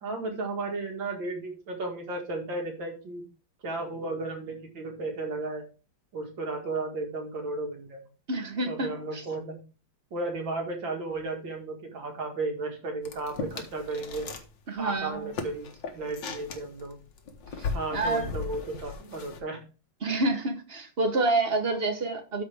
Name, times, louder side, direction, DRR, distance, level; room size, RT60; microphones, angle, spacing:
voice 1, 0.0-3.2 3.6-5.6 6.1-8.0 8.7-9.6 10.1-14.3 14.8-17.0 17.7-19.6, right 2 dB, 75° right, 2 dB, 2.7 m, -34 dB
voice 2, 8.3-9.2 14.7-15.3 17.6-18.3 20.0-22.4, right 2 dB, 35° right, 7 dB, 1.1 m, -28 dB
sound 1, 13.0-14.5 14.8-19.4, left 5 dB, 70° left, 1.8 m, -37 dB
13.0 x 5.0 x 3.4 m, 0.32 s
omnidirectional pair, 2.1 m